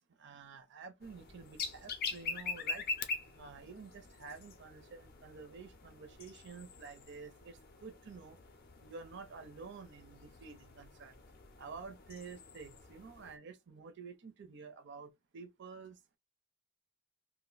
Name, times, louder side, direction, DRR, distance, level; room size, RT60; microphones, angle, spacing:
voice 1, 0.2-2.8 3.4-8.4 8.8-11.2 11.6-16.0, right 5 dB, 55° right, 0.5 m, -50 dB
sound 1, 1.0-13.4, left 4 dB, 45° left, 0.5 m, -44 dB
2.5 x 2.0 x 3.9 m
head